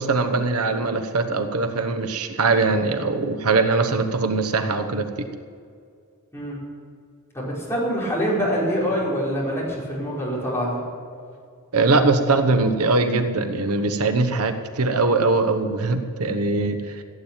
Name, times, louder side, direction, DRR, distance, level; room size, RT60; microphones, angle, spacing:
voice 1, 0.0-5.3 11.7-16.9, right 3 dB, 85° right, 8 dB, 1.1 m, -21 dB
voice 2, 7.3-10.8, equal, 10° left, -6 dB, 5.0 m, -25 dB
16.5 x 9.0 x 8.9 m, 2.2 s
head